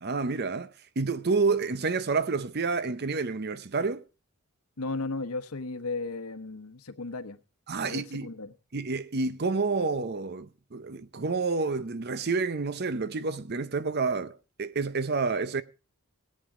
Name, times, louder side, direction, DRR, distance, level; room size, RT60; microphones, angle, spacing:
voice 1, 0.0-4.0 7.7-8.3 8.7-15.6, right 4 dB, 45° right, 0.7 m, -29 dB
voice 2, 4.8-7.4 7.8-8.5, left 3 dB, 80° left, 1.1 m, -35 dB
17.5 x 8.7 x 4.9 m
head